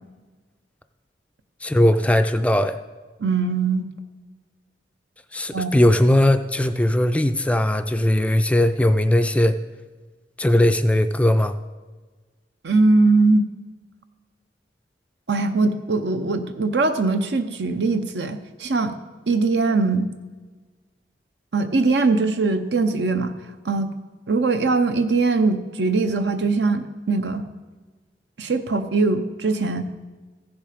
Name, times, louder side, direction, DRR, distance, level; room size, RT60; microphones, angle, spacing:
voice 1, 1.6-2.7 5.3-9.5 10.4-11.5, left 1 dB, 10° left, 9 dB, 0.3 m, -19 dB
voice 2, 3.2-3.9 5.5-5.9 12.6-13.4 15.3-18.9 19.3-20.1 21.5-23.4 23.6-23.9 24.3-27.4 28.4-29.8, right 3 dB, 75° right, 8 dB, 0.8 m, -21 dB
14.5 x 7.2 x 5.1 m, 1.3 s
head